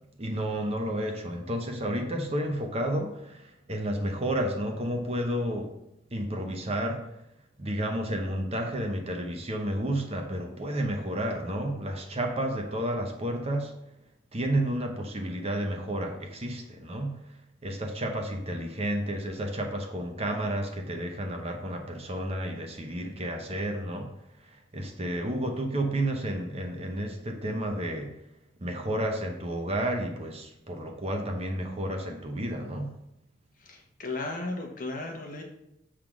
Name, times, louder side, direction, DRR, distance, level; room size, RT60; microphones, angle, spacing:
voice 1, 0.2-5.7 6.1-7.2 7.6-13.7 14.3-24.1 24.4-28.1 28.6-32.9, right 1 dB, 30° right, 3 dB, 0.8 m, -31 dB
voice 2, 33.6-35.4, left 2 dB, 45° left, 2 dB, 1.1 m, -35 dB
6.6 x 3.7 x 6.0 m, 0.84 s
head